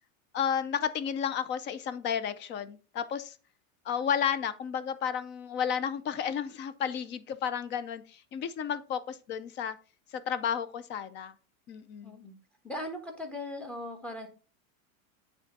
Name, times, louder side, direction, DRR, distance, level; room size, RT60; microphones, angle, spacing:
voice 1, 0.3-3.4 3.9-9.8 10.1-11.3 11.7-12.1, left 8 dB, 25° left, 13 dB, 0.4 m, -32 dB
voice 2, 12.0-12.3 12.6-14.3, left 1 dB, 5° left, 4 dB, 1.3 m, -39 dB
8.8 x 3.5 x 4.0 m, 0.36 s
supercardioid pair, 130°, 42 cm